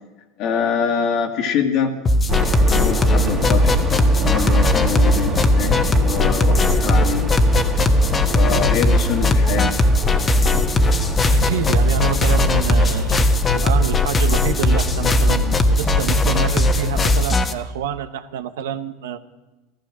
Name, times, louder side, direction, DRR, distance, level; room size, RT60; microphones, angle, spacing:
voice 1, 0.4-1.9 2.6-3.8 4.2-7.3 8.3-9.8, left 7 dB, 55° left, 2 dB, 1.9 m, -24 dB
sound 1, 2.1-17.5, left 2 dB, 25° left, 1.2 m, -18 dB
sound 2, 2.3-17.2, right 4 dB, 40° right, 2.8 m, -26 dB
voice 2, 11.3-19.2, right 8 dB, 80° right, 11 dB, 0.9 m, -27 dB
14.5 x 14.0 x 6.1 m, 1.1 s
hypercardioid pair, 100°, 0 cm